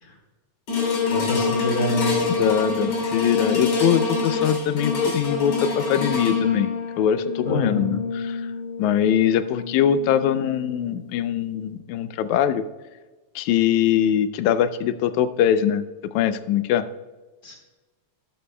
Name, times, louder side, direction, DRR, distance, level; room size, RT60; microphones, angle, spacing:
sound 1, 0.7-11.1 11.6-11.7, left 4 dB, 60° left, 3.6 m, -26 dB
voice 1, 1.1-2.2 7.4-7.9 17.4-17.6, right 1 dB, 35° left, 0 dB, 2.2 m, -27 dB
voice 2, 2.3-6.7 7.0-8.5 8.8-12.7 13.4-16.9, left 9 dB, 80° left, 12 dB, 1.9 m, -22 dB
12.0 x 12.0 x 2.2 m, 1.2 s
omnidirectional pair, 3.4 m